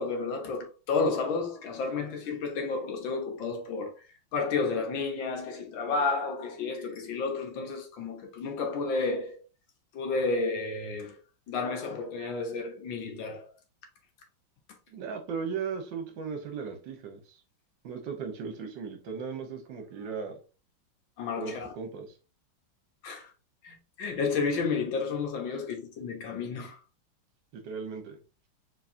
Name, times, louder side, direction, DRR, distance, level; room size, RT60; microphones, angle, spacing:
voice 1, 0.0-3.9 4.3-9.4 9.9-11.2 11.5-13.5 21.2-21.7 23.0-23.3 23.6-26.8, left 4 dB, 70° left, 1.8 m, -31 dB
voice 2, 14.9-17.4 17.8-20.4 21.4-22.2 27.5-28.2, right 6 dB, 65° right, 1.6 m, -37 dB
4.6 x 4.0 x 2.8 m
omnidirectional pair, 2.3 m